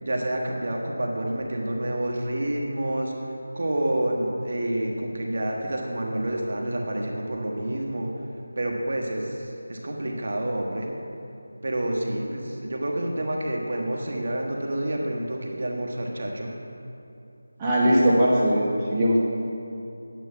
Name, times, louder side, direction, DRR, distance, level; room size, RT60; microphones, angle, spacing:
voice 1, 0.0-3.1 3.5-8.1 8.5-10.9 11.6-16.5, right 1 dB, 60° right, 0 dB, 1.4 m, -28 dB
voice 2, 17.6-19.2, equal, 15° right, -7 dB, 1.4 m, -20 dB
9.4 x 9.0 x 5.7 m, 2.7 s
figure-of-eight pair, 165°, 0 cm